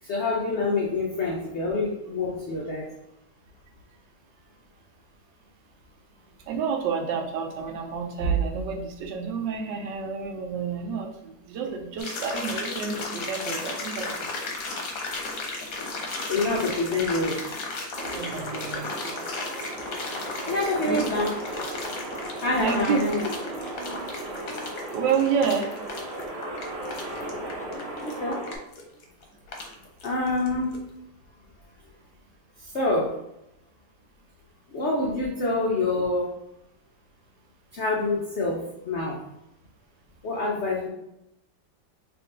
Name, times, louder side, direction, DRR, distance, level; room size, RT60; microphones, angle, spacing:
voice 1, 0.0-2.9 16.3-17.4 20.4-21.3 22.4-23.3 28.0-28.4 30.0-30.8 32.6-33.2 34.7-36.3 37.7-39.2 40.2-40.9, left 2 dB, 80° left, -3 dB, 0.6 m, -26 dB
voice 2, 6.5-14.3 18.1-19.2 20.8-21.0 22.5-23.0 24.9-25.7, right 6 dB, 75° right, 3 dB, 1.2 m, -29 dB
sound 1, 12.0-30.5 30.7-30.8, left 3 dB, 60° left, 1.0 m, -35 dB
sound 2, 17.9-28.6, right 1 dB, 50° right, 0.7 m, -36 dB
3.6 x 2.9 x 3.7 m, 0.84 s
omnidirectional pair, 2.1 m